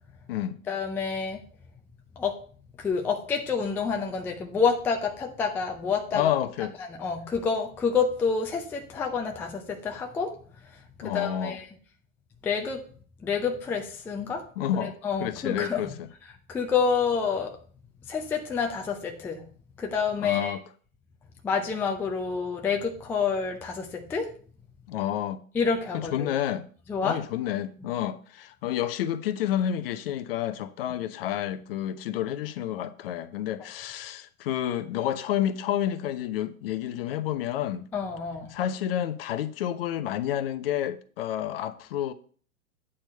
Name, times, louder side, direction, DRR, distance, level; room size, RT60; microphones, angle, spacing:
voice 1, 0.7-1.4 2.2-2.4 2.8-6.3 6.9-10.4 11.0-11.7 12.4-12.8 13.2-14.5 14.8-15.8 16.5-17.5 18.1-19.4 19.8-20.6 21.4-24.3 25.5-26.3 26.9-27.2 37.9-38.5, left 5 dB, 5° left, 0.4 m, -28 dB
voice 2, 6.1-6.7 11.0-11.6 14.6-16.1 20.2-20.6 24.9-25.4 25.9-26.7 27.0-37.9 38.5-42.1, left 11 dB, 40° left, 0.7 m, -30 dB
8.8 x 4.4 x 5.3 m
figure-of-eight pair, 110°, 42 cm